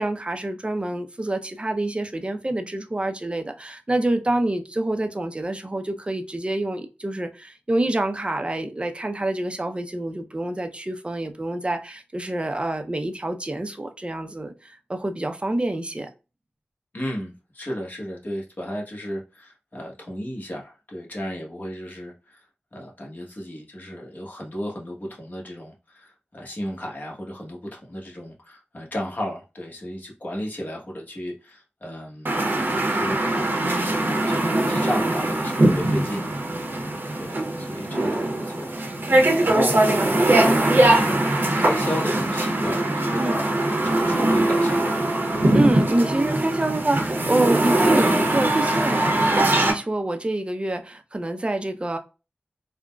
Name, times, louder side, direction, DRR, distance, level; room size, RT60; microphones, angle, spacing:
voice 1, 0.0-16.1 43.2-43.4 45.5-52.0, right 1 dB, 30° right, 0.5 m, -27 dB
voice 2, 16.9-32.3 32.7-34.0 34.2-43.4 43.6-45.1, equal, 50° left, 1.1 m, -34 dB
sound 1, 32.3-49.7, right 1 dB, 65° right, 0.8 m, -21 dB
3.7 x 2.1 x 2.2 m
wide cardioid pair, 55°, 4 cm